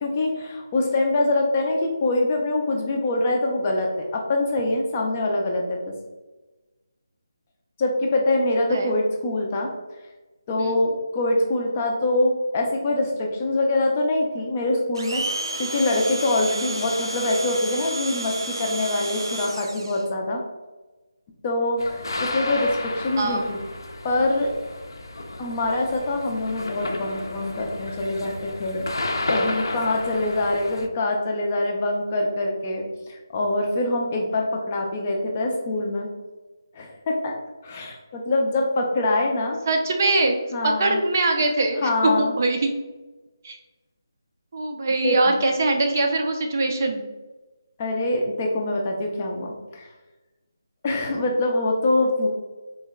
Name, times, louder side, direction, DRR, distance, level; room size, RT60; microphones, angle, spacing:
voice 1, 0.0-5.9 7.8-9.7 10.5-15.2 15.6-20.4 21.4-23.6 24.0-24.5 25.4-36.1 36.7-37.3 37.6-39.6 40.5-41.0 41.8-42.3 45.0-45.3 47.8-49.9 50.8-52.3, left 2 dB, 25° left, 0 dB, 0.4 m, -24 dB
Domestic sounds home sounds, 14.9-20.0, right 2 dB, 90° right, 0.5 m, -31 dB
sound 1, 21.8-30.9, left 2 dB, 75° left, 0.5 m, -31 dB
voice 2, 23.2-23.5 39.7-42.7 43.4-43.6 44.5-47.0, right 2 dB, 40° right, 4 dB, 0.4 m, -23 dB
3.8 x 2.1 x 3.6 m, 1.2 s
figure-of-eight pair, 170°, 2 cm